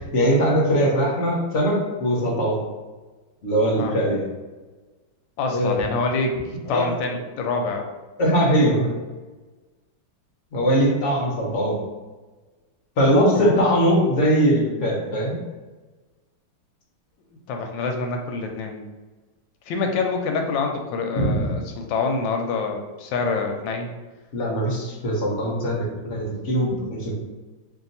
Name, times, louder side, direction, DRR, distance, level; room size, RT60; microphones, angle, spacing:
voice 1, 0.0-2.6 3.4-4.3 5.5-5.8 6.7-6.9 8.2-8.9 10.5-11.8 13.0-15.4 21.2-21.3 24.3-27.1, equal, 55° left, -3 dB, 0.8 m, -21 dB
voice 2, 5.4-6.4 6.7-7.9 13.3-13.6 17.5-18.8 19.7-23.9, left 4 dB, 80° left, 3 dB, 1.3 m, -26 dB
3.0 x 2.7 x 3.9 m, 1.3 s
omnidirectional pair, 2.2 m